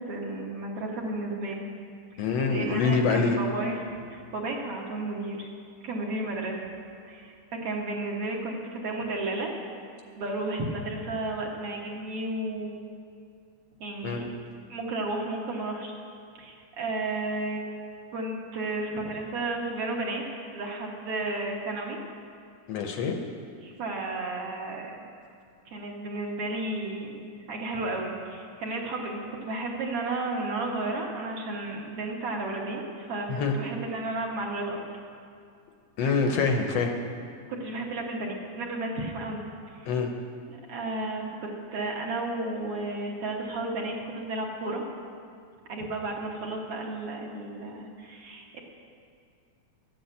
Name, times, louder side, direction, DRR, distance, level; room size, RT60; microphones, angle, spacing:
voice 1, 0.0-1.7 2.1-2.2 2.5-5.5 5.8-6.6 7.1-9.5 10.1-12.8 13.8-14.2 14.7-15.9 16.3-17.6 18.1-20.2 20.5-22.0 23.6-25.1 25.7-27.2 27.5-35.0 37.5-39.4 39.8-39.9 40.5-44.8 45.7-48.6, right 2 dB, 55° right, -1 dB, 2.1 m, -33 dB
voice 2, 2.2-3.4 14.0-14.3 22.7-23.2 33.3-33.5 36.0-36.9 39.9-40.1, left 4 dB, 70° left, 4 dB, 1.7 m, -25 dB
12.5 x 8.6 x 8.1 m, 2.3 s
omnidirectional pair, 3.6 m